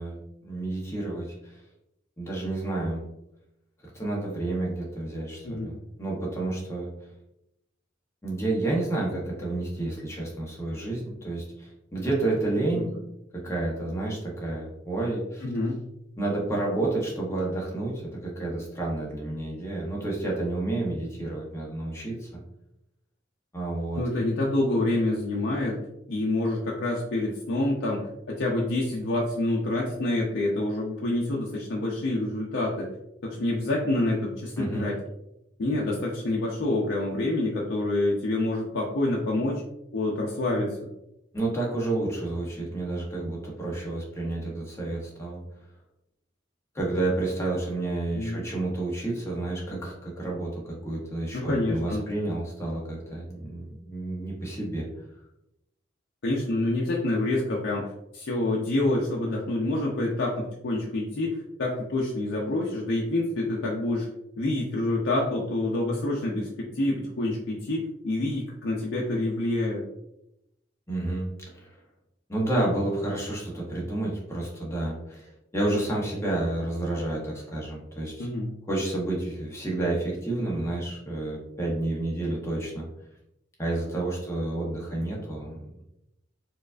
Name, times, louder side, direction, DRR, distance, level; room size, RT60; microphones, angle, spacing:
voice 1, 0.0-1.6 2.2-3.0 3.9-6.9 8.2-12.9 13.3-15.4 16.2-22.3 23.5-24.0 34.6-34.9 41.3-45.4 46.7-54.9 70.9-71.3 71.5-71.7 72.3-78.3 78.7-82.9 83.6-85.8, right 2 dB, 15° left, -3 dB, 0.7 m, -30 dB
voice 2, 15.4-15.8 23.9-25.8 26.1-32.9 33.2-34.9 35.6-39.6 39.9-40.8 48.1-48.4 51.3-52.3 56.2-64.1 64.4-69.8 78.2-78.5, left 2 dB, 70° left, -3 dB, 0.5 m, -27 dB
4.5 x 2.4 x 2.4 m, 0.85 s
head